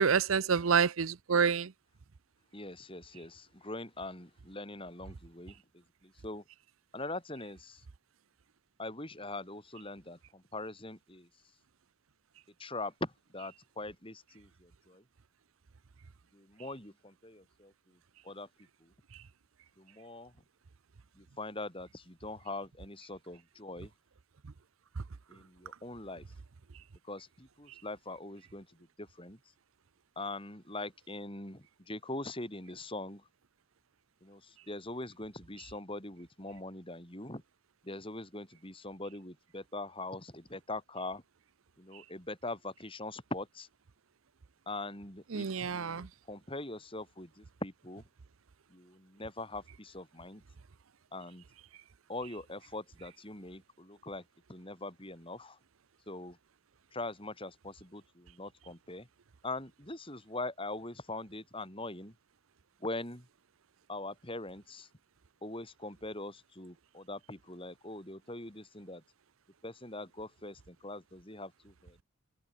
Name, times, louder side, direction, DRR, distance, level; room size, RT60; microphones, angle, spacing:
voice 1, 0.0-1.7 45.3-46.1, right 6 dB, 75° right, 0.6 m, -27 dB
voice 2, 2.5-6.4 6.9-7.9 8.8-11.3 12.6-15.0 16.3-18.0 18.2-18.5 18.8-18.9 19.8-20.3 21.2-23.9 25.3-26.3 27.0-29.4 30.2-33.3 34.2-37.4 37.8-41.2 41.8-43.7 44.7-48.0 48.7-50.4 51.1-51.4 52.1-54.2 54.5-55.6 56.1-56.4 56.9-59.1 59.4-62.2 62.8-63.3 63.9-64.9 65.4-69.0 69.6-72.0, left 2 dB, 25° left, 6.9 m, -42 dB
head